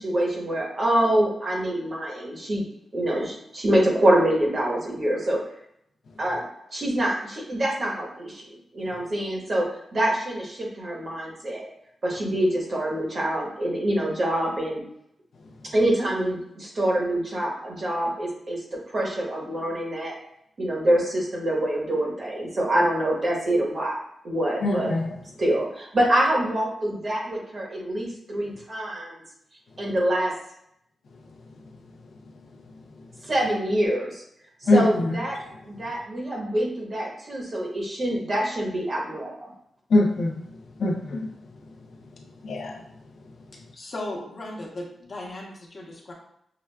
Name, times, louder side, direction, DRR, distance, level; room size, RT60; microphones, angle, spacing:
voice 1, 0.0-2.6 2.9-5.4 6.2-6.4 6.7-8.5 8.7-11.6 12.0-14.8 15.7-18.6 18.9-20.2 20.6-24.0 24.2-24.9 25.4-29.1 29.8-30.3 33.2-34.2 34.6-35.4 35.6-39.5, right 1 dB, 45° right, -2 dB, 1.1 m, -25 dB
voice 2, 24.6-25.2 34.7-35.2 39.9-40.4 40.8-41.3 42.4-42.8, left 2 dB, 70° left, 1 dB, 0.5 m, -22 dB
voice 3, 43.7-46.1, left 1 dB, 40° left, -2 dB, 0.9 m, -36 dB
5.8 x 2.2 x 2.2 m, 0.74 s
wide cardioid pair, 115°, 0 cm